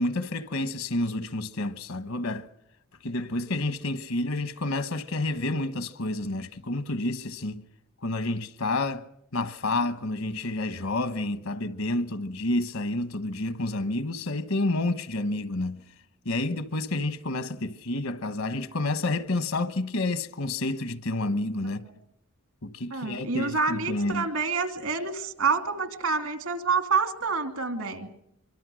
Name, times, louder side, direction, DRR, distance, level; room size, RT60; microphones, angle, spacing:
voice 1, 0.0-2.5 3.0-7.6 8.0-9.1 9.3-15.8 16.2-21.8 22.6-24.3, left 2 dB, 75° left, 1.2 m, -29 dB
voice 2, 22.9-28.1, right 4 dB, 80° right, 2.6 m, -27 dB
24.5 x 24.0 x 6.3 m
head